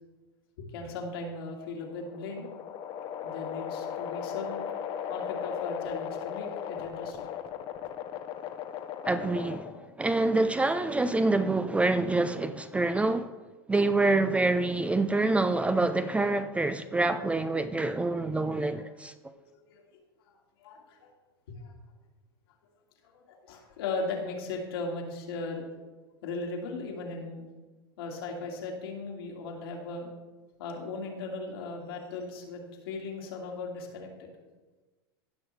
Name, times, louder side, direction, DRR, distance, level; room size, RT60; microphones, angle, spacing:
voice 1, 0.6-2.5 3.2-4.7 5.1-7.3 19.7-19.8 20.3-20.4 20.6-21.1 21.5-21.7 23.1-25.6 26.2-27.4 28.0-30.1 30.6-34.1, left 3 dB, 75° left, 2.2 m, -37 dB
sound 1, 1.7-9.9, left 8 dB, 45° left, 0.9 m, -37 dB
voice 2, 9.0-13.3 13.7-19.3, right 2 dB, 10° right, 0.4 m, -26 dB
16.5 x 6.2 x 3.3 m
hypercardioid pair, 105°, 13 cm